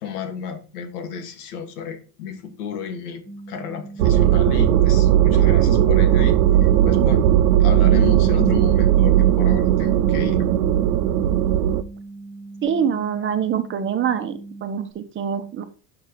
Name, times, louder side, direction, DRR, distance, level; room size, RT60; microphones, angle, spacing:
voice 1, 0.0-7.2 7.6-10.5, left 6 dB, 90° left, 6 dB, 1.7 m, -32 dB
sound 1, 3.3-14.9, right 3 dB, 5° left, 0.5 m, -40 dB
sound 2, 4.0-11.8, right 11 dB, 75° right, 0.7 m, -17 dB
voice 2, 12.6-15.6, right 8 dB, 25° right, 9 dB, 1.0 m, -25 dB
5.7 x 5.6 x 4.8 m, 0.36 s
supercardioid pair, 115°, 44 cm